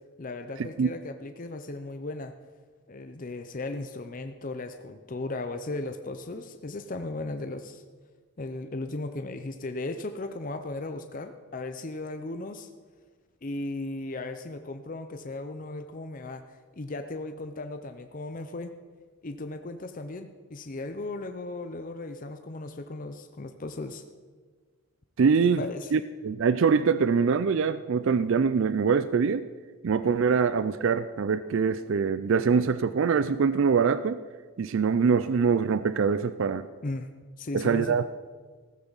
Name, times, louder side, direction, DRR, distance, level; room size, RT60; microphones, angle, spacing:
voice 1, 0.2-2.3 2.9-7.8 8.4-12.7 13.4-18.7 19.2-24.0 25.6-25.9 36.8-37.1 37.4-38.0, left 2 dB, 35° left, 7 dB, 0.6 m, -36 dB
voice 2, 25.2-25.6 25.9-29.5 29.8-34.2 34.6-36.7 37.5-38.0, right 5 dB, 60° right, 14 dB, 0.4 m, -24 dB
15.0 x 14.0 x 4.0 m, 1.5 s
head